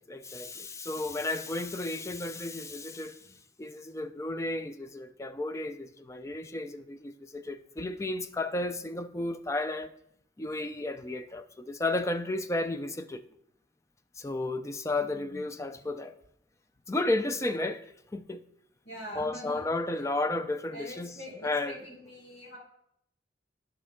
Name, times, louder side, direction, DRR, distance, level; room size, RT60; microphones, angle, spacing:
voice 1, 0.0-3.2 3.6-9.9 10.4-13.2 14.2-16.1 16.9-18.4 19.2-21.8, left 2 dB, 15° left, 0.4 m, -33 dB
voice 2, 15.0-15.4 18.8-19.6 20.7-22.6, equal, 70° left, 3.8 m, -44 dB
12.0 x 5.4 x 3.6 m
head